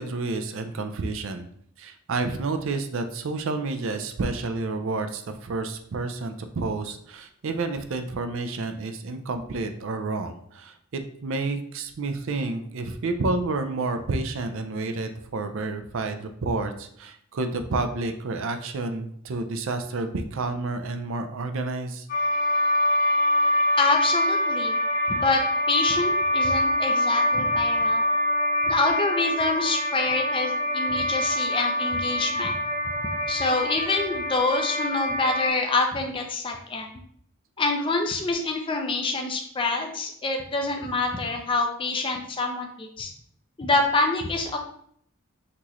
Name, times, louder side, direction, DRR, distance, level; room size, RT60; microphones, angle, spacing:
voice 1, 0.0-1.5 1.8-22.1, right 3 dB, 60° right, 7 dB, 0.5 m, -30 dB
sound 1, 22.1-35.5, left 1 dB, 40° left, 1.0 m, -25 dB
voice 2, 23.8-24.8 25.1-25.4 25.7-28.0 28.7-32.5 33.3-36.9 37.6-43.1 43.6-44.6, left 3 dB, 25° left, 3 dB, 0.5 m, -26 dB
5.9 x 3.0 x 3.0 m, 0.66 s
head